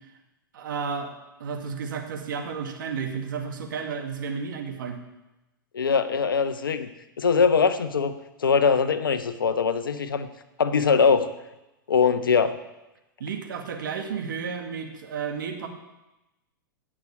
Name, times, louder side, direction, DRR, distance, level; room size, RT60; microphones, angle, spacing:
voice 1, 0.5-1.1 1.4-5.0 13.2-15.7, right 6 dB, 65° right, 3 dB, 2.2 m, -32 dB
voice 2, 5.7-6.9 7.2-10.3 10.6-11.3 11.9-12.6, left 5 dB, 80° left, 11 dB, 1.0 m, -22 dB
17.5 x 6.4 x 7.2 m, 0.98 s
hypercardioid pair, 105°, 11 cm